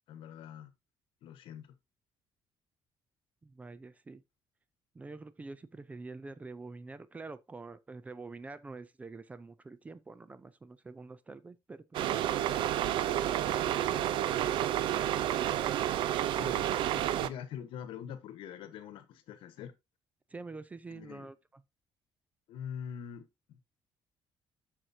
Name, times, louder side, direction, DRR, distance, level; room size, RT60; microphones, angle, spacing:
voice 1, 0.1-0.7 1.2-1.7 16.3-19.7 20.9-21.3 22.5-23.6, left 8 dB, 80° left, 1.2 m, -44 dB
voice 2, 3.4-4.2 4.9-11.8 20.3-21.6, right 3 dB, 15° right, 0.4 m, -46 dB
sound 1, 11.9-17.3, right 11 dB, 70° right, 0.5 m, -30 dB
7.7 x 6.4 x 2.7 m
cardioid pair, 155°, 9 cm